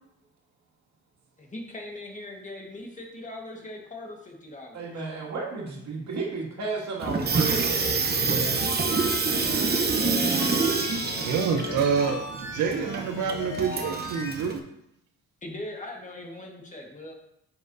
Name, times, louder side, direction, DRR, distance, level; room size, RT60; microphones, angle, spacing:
voice 1, 1.4-5.1 15.4-17.1, left 1 dB, 25° left, 1 dB, 1.7 m, -40 dB
voice 2, 4.7-7.7, right 4 dB, 65° right, -2 dB, 2.3 m, -33 dB
Water tap faucet / Sink (filling or washing), 7.0-14.6, right 4 dB, 35° right, 0.9 m, -27 dB
sound 1, 7.5-14.3, left 3 dB, 85° left, 2.5 m, -38 dB
voice 3, 11.2-14.6, right 6 dB, 85° right, 4 dB, 0.8 m, -27 dB
9.2 x 5.9 x 2.7 m, 0.78 s
cardioid pair, 90°, 30 cm